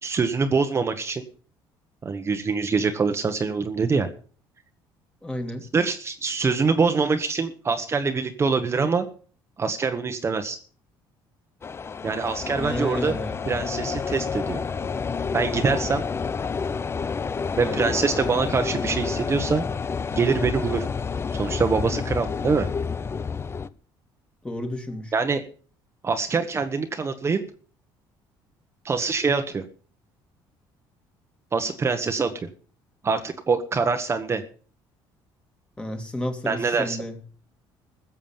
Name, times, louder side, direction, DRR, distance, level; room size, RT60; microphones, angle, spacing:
voice 1, 0.0-1.2 2.0-4.1 5.7-9.1 9.6-10.6 12.0-13.1 13.5-14.6 15.3-16.0 17.6-19.6 20.1-20.9 21.3-22.7 25.1-25.4 26.0-27.4 28.8-29.6 31.5-32.5 33.0-34.4 36.5-37.0, right 4 dB, 30° right, 6 dB, 1.2 m, -24 dB
voice 2, 5.2-5.6 12.6-13.5 17.6-17.9 24.4-25.1 35.8-37.2, left 1 dB, 10° left, 5 dB, 2.3 m, -31 dB
sound 1, 11.6-23.7, left 5 dB, 25° left, 0.7 m, -29 dB
15.5 x 7.2 x 7.3 m, 0.43 s
cardioid pair, 110°, 9 cm